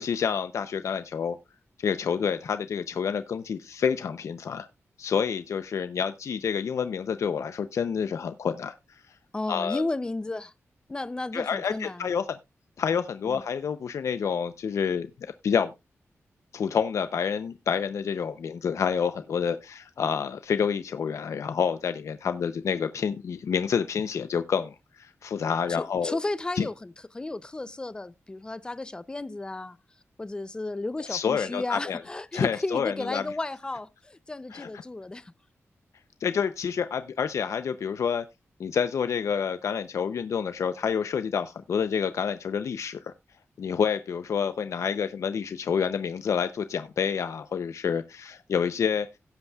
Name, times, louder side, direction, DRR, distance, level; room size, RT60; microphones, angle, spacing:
voice 1, 0.0-1.4 1.8-4.7 5.0-8.7 9.5-9.8 11.3-12.2 12.8-15.7 16.5-26.2 26.6-26.7 31.1-32.0 32.3-33.2 34.5-34.7 36.2-38.2 38.6-43.1 43.6-49.1, left 7 dB, 75° left, 0.6 m, -28 dB
voice 2, 9.3-10.5 10.9-12.1 13.3-13.4 25.8-29.8 30.2-35.3, left 2 dB, 15° left, 0.5 m, -33 dB
17.0 x 8.1 x 2.3 m
wide cardioid pair, 170°, 5 cm